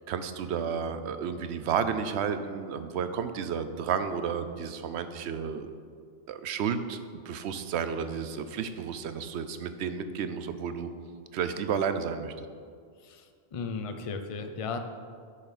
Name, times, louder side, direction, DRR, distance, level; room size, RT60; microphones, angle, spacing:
voice 1, 0.1-5.7 6.3-10.9 11.3-12.5, right 7 dB, 85° right, 10 dB, 0.9 m, -32 dB
voice 2, 13.0-14.8, left 5 dB, 40° left, 7 dB, 0.6 m, -36 dB
9.7 x 6.4 x 4.1 m, 2.1 s
omnidirectional pair, 1.1 m